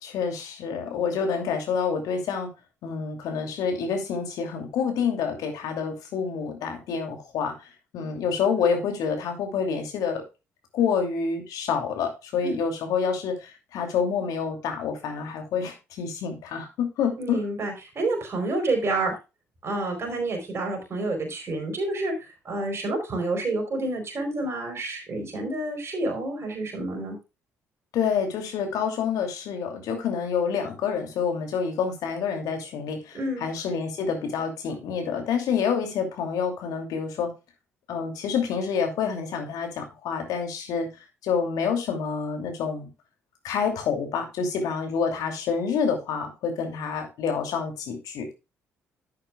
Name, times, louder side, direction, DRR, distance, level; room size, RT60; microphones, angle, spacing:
voice 1, 0.0-2.5 2.8-10.2 10.7-17.4 27.9-37.3 37.9-40.9 41.2-42.9 43.4-48.3, left 6 dB, 65° left, 4 dB, 2.7 m, -28 dB
voice 2, 17.2-19.1 19.6-22.1 22.4-27.2 33.1-33.5, right 2 dB, 40° right, 2 dB, 4.6 m, -29 dB
11.5 x 8.6 x 2.3 m, 0.27 s
figure-of-eight pair, 45°, 7 cm